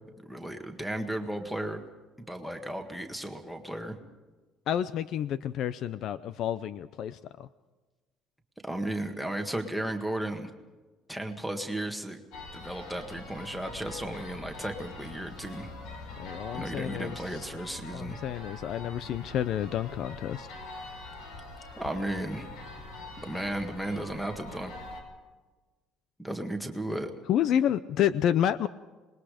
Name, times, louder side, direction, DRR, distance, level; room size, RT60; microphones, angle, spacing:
voice 1, 0.3-1.8 2.3-4.0 8.6-10.5 11.1-12.2 12.5-15.7 16.5-18.2 21.8-22.5 23.2-24.7 26.2-27.1, right 1 dB, ahead, 6 dB, 1.7 m, -34 dB
voice 2, 4.7-7.5 16.2-17.4 17.9-20.5 27.3-28.7, left 10 dB, 50° left, 16 dB, 0.5 m, -29 dB
sound 1, 12.3-25.0, left 3 dB, 75° left, 5.1 m, -44 dB
26.5 x 21.0 x 5.1 m, 1.3 s
cardioid pair, 170°, 0 cm